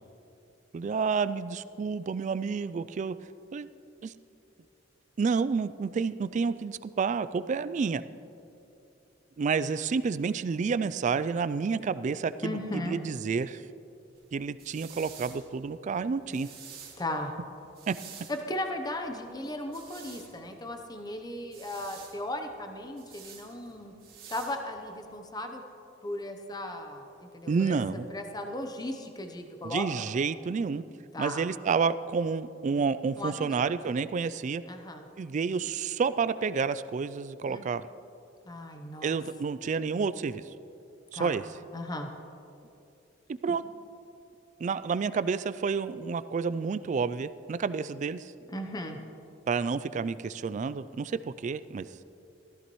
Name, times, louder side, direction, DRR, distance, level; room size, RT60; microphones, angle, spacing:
voice 1, 0.7-3.2 3.5-3.7 4.0-4.1 5.2-8.0 9.4-13.6 14.3-16.5 17.9-18.0 27.5-28.1 29.6-30.8 31.2-34.6 35.2-37.8 39.0-40.4 41.1-41.4 43.3-43.6 44.6-48.3 49.5-51.9, right 5 dB, 40° right, 15 dB, 0.3 m, -29 dB
voice 2, 12.4-13.0 17.0-17.3 18.3-23.9 24.3-25.6 26.0-27.8 28.1-30.0 31.1-31.4 33.2-33.7 34.7-35.1 37.5-37.7 38.4-39.2 41.1-41.3 41.7-42.1 48.5-49.0, left 1 dB, 20° left, 5 dB, 0.8 m, -36 dB
sound 1, 14.1-25.1, right 7 dB, 55° right, 2.2 m, -51 dB
15.0 x 14.0 x 3.1 m, 2.8 s
head